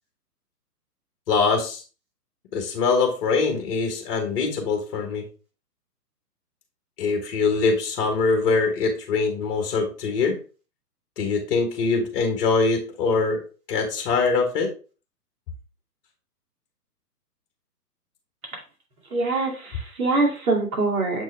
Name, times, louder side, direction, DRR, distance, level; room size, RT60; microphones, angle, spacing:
voice 1, 1.3-1.8 2.5-5.2 7.0-10.3 11.2-13.4 13.7-14.7, left 4 dB, 35° left, 3 dB, 1.6 m, -23 dB
voice 2, 19.1-21.2, right 3 dB, 60° right, -1 dB, 2.5 m, -24 dB
7.1 x 4.4 x 3.4 m, 0.35 s
figure-of-eight pair, 130°, 48 cm